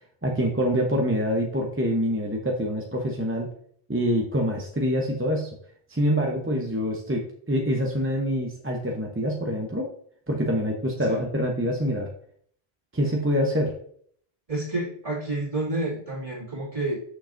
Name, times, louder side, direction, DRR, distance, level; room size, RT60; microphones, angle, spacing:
voice 1, 0.2-3.5 3.9-5.6 5.9-9.9 10.3-12.1 12.9-13.7, equal, 15° right, 0 dB, 0.6 m, -25 dB
voice 2, 14.5-17.0, right 2 dB, 35° right, -6 dB, 2.5 m, -29 dB
6.5 x 6.2 x 2.6 m, 0.62 s
omnidirectional pair, 1.1 m